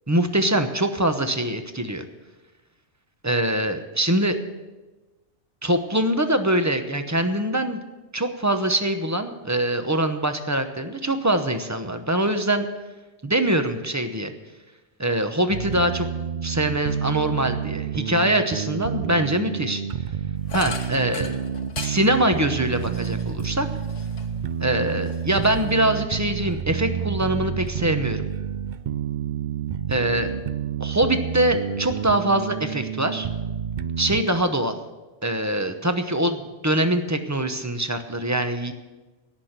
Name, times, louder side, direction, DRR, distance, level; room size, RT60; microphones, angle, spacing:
voice 1, 0.1-2.0 3.2-4.4 5.6-7.8 8.1-12.7 13.2-14.3 15.0-16.1 16.4-19.8 20.5-21.4 21.8-23.7 24.6-28.3 29.9-30.3 30.8-33.3 34.0-34.7 35.2-38.7, right 1 dB, 15° right, 7 dB, 0.7 m, -23 dB
sound 1, 15.5-34.2, right 8 dB, 75° right, 0.4 m, -29 dB
sound 2, 20.5-24.5 24.9-26.0, left 5 dB, 65° left, 1.4 m, -39 dB
17.5 x 6.0 x 8.1 m, 1.2 s
omnidirectional pair, 1.4 m